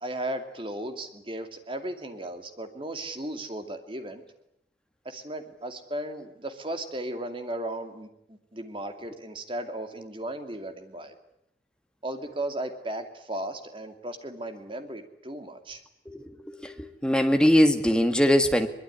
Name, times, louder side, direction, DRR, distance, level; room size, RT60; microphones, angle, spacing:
voice 1, 0.0-4.2 5.0-11.1 12.0-15.8, right 1 dB, 25° right, 7 dB, 2.5 m, -36 dB
voice 2, 16.1-18.7, equal, 5° left, 6 dB, 1.8 m, -22 dB
22.5 x 22.0 x 10.0 m, 0.78 s
head